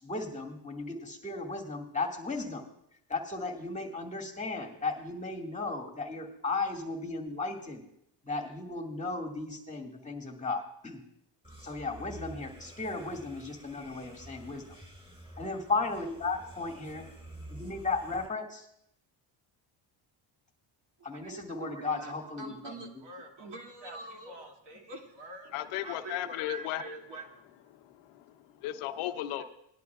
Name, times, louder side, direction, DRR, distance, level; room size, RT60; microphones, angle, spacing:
voice 1, 0.0-2.6 3.1-7.8 8.2-11.0 11.6-14.6 15.4-17.1 17.5-18.7 21.0-22.7, left 3 dB, 15° left, 1 dB, 2.0 m, -35 dB
sound 1, 11.4-18.3, right 1 dB, 10° right, 5.3 m, -49 dB
voice 2, 21.1-27.3 29.4-29.5, right 3 dB, 55° right, 1 dB, 2.7 m, -45 dB
voice 3, 25.5-26.8 27.7-29.4, left 14 dB, 85° left, 9 dB, 0.8 m, -36 dB
19.0 x 11.0 x 2.4 m, 0.76 s
cardioid pair, 95°, 50 cm